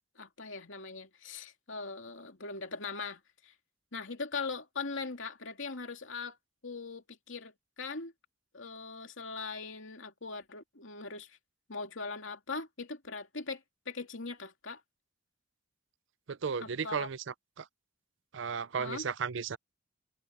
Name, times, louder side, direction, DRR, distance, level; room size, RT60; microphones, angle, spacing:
voice 1, 0.2-3.5 3.9-6.4 6.6-8.1 8.5-11.4 11.7-14.8 16.6-17.1 18.8-19.1, left 4 dB, 70° left, 2.7 m, -40 dB
voice 2, 16.3-17.7 18.3-19.6, right 6 dB, 65° right, 0.5 m, -35 dB
head